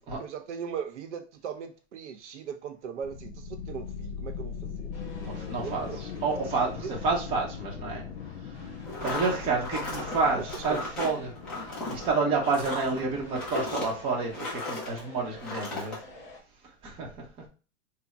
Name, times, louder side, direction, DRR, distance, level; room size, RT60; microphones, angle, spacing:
voice 1, 0.0-4.9 5.5-6.0 6.3-7.0 10.3-10.9, right 7 dB, 75° right, 7 dB, 0.8 m, -39 dB
sound 1, 3.0-14.4, left 6 dB, 60° left, 0.4 m, -41 dB
sound 2, 4.9-16.4, left 1 dB, 35° left, 1.5 m, -48 dB
voice 2, 5.2-5.9 6.2-6.7 7.0-8.0 9.0-11.3 11.9-15.9 16.8-17.1, right 4 dB, 15° right, -2 dB, 0.7 m, -29 dB
sound 3, 8.8-15.0 15.4-16.0, left 2 dB, 5° left, 0.4 m, -35 dB
3.5 x 2.0 x 4.0 m, 0.35 s
hypercardioid pair, 155°, 36 cm